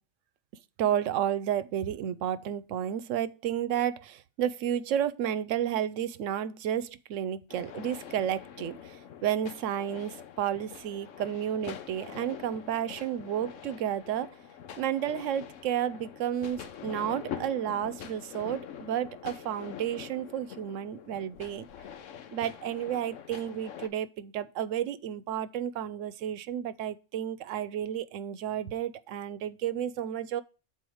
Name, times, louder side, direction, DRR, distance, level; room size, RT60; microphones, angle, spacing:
voice 1, 0.8-14.3 14.8-21.7 22.3-30.4, right 10 dB, 85° right, 1.0 m, -32 dB
sound 1, 7.5-23.9, left 9 dB, 90° left, 1.1 m, -44 dB
7.8 x 4.4 x 4.8 m
omnidirectional pair, 1.3 m